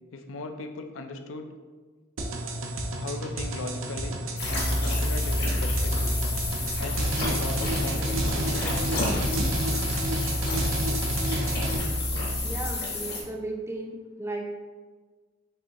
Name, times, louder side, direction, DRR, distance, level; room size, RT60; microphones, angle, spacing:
voice 1, 0.1-1.5 3.0-4.2 4.5-6.1 6.8-9.1, left 3 dB, 75° left, 6 dB, 0.5 m, -38 dB
sound 1, 2.2-11.8, right 1 dB, 85° right, 0.6 m, -31 dB
sound 2, 4.4-13.2, left 3 dB, 55° left, 1.2 m, -32 dB
sound 3, 4.4-12.7, equal, 55° right, 1.0 m, -30 dB
voice 2, 12.4-14.5, right 2 dB, 15° right, 1 dB, 0.5 m, -35 dB
5.2 x 3.4 x 2.9 m, 1.4 s
head